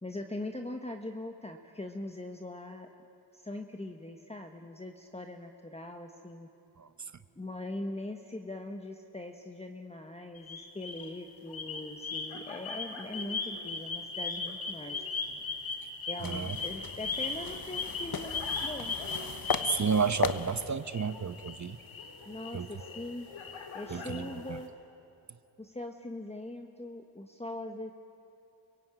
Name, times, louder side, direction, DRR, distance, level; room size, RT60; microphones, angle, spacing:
voice 1, 0.0-2.9 3.3-6.5 7.4-15.0 16.1-18.9 21.7-21.8 22.2-23.3 23.7-24.7 25.6-27.9, left 1 dB, 15° left, 4 dB, 1.4 m, -41 dB
voice 2, 6.8-7.1 16.2-16.6 19.6-21.8 22.5-22.7 23.9-24.6, right 6 dB, 40° right, 13 dB, 0.9 m, -32 dB
sound 1, 10.4-11.1 11.5-20.5 20.9-24.6, left 4 dB, 85° left, 2.8 m, -38 dB
sound 2, 16.2-20.8, left 6 dB, 50° left, 1.2 m, -37 dB
30.0 x 16.5 x 9.0 m, 2.9 s
cardioid pair, 60°, 46 cm